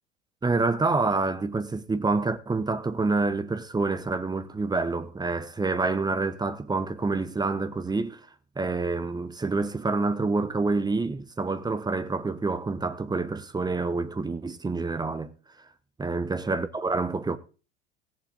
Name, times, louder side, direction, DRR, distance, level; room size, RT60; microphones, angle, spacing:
voice 1, 0.4-8.3 8.6-15.3 15.6-15.7 16.0-17.4, right 3 dB, 10° right, 1.2 m, -27 dB
20.0 x 7.6 x 3.6 m
figure-of-eight pair, 80°, 33 cm